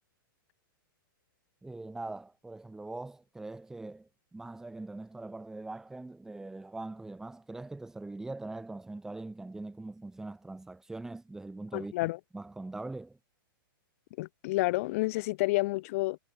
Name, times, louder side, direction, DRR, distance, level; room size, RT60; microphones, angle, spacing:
voice 1, 1.6-13.2, right 2 dB, 5° right, 3.3 m, -42 dB
voice 2, 11.7-12.2 14.2-16.2, left 21 dB, 40° left, 1.7 m, -29 dB
hypercardioid pair, 165°, 12 cm